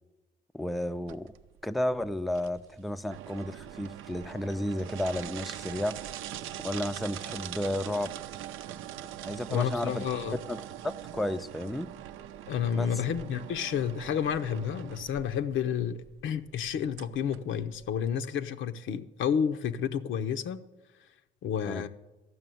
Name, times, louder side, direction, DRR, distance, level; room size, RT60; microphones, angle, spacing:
voice 1, 0.5-1.3 1.6-5.9 6.6-8.1 9.2-10.0 10.5-11.9 12.7-12.9 21.7-21.8, left 1 dB, ahead, 10 dB, 0.4 m, -32 dB
sound 1, 1.1-18.1, right 11 dB, 90° right, 0.5 m, -42 dB
voice 2, 9.5-10.4 12.5-20.6 21.4-21.9, left 8 dB, 75° left, 9 dB, 0.7 m, -30 dB
12.5 x 6.1 x 9.1 m, 1.1 s
cardioid pair, 90°, 20 cm